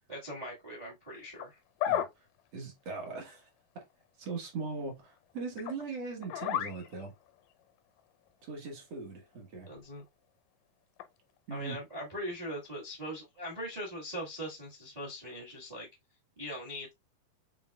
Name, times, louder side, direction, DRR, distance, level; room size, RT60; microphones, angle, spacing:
voice 1, 0.1-1.6 9.7-10.0 11.5-15.9 16.4-16.9, equal, 45° right, 0.5 m, -41 dB
sound 1, 1.1-1.5 1.8-2.1 5.6-5.8 6.2-7.4 8.0-8.1 9.8-9.9 11.0-11.1 12.3-12.4, left 11 dB, 80° left, 1.6 m, -33 dB
voice 2, 2.5-3.5 4.2-7.1 8.4-9.7 11.5-11.8, right 4 dB, 60° right, 1.9 m, -40 dB
7.3 x 3.2 x 2.2 m
omnidirectional pair, 3.9 m